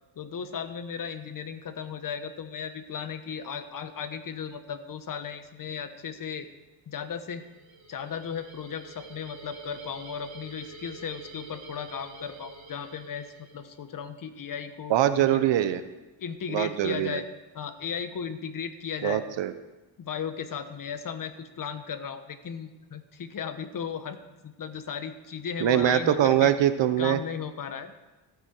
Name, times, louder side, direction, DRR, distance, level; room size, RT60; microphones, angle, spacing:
voice 1, 0.2-6.5 6.9-7.4 7.9-15.4 16.2-17.3 17.5-19.2 20.0-24.2 24.4-26.5 27.0-28.1, left 7 dB, 40° left, 10 dB, 1.1 m, -36 dB
sound 1, 7.4-13.8, right 3 dB, 35° right, 3.2 m, -47 dB
voice 2, 14.9-15.8 16.5-17.2 19.0-19.5 25.6-27.2, right 11 dB, 60° right, 12 dB, 0.9 m, -23 dB
16.0 x 9.0 x 4.5 m, 1.1 s
cardioid pair, 100°, 50 cm